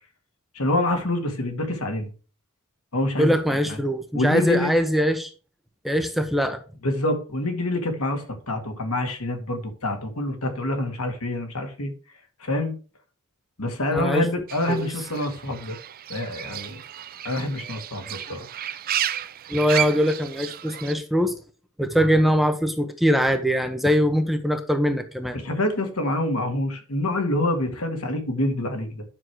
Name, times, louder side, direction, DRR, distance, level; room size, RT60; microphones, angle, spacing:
voice 1, 0.5-2.1 2.9-3.4 4.1-4.7 6.8-11.9 12.4-12.7 13.6-15.8 16.1-16.8 17.2-18.5 25.4-29.0, left 1 dB, 70° left, 2.1 m, -26 dB
voice 2, 3.2-5.3 5.8-6.6 13.9-14.3 14.7-14.9 19.5-21.3 21.8-25.4, equal, ahead, 0.8 m, -22 dB
Fowl / Bird, 14.5-20.9, right 10 dB, 40° right, 0.4 m, -32 dB
10.0 x 6.4 x 4.7 m
head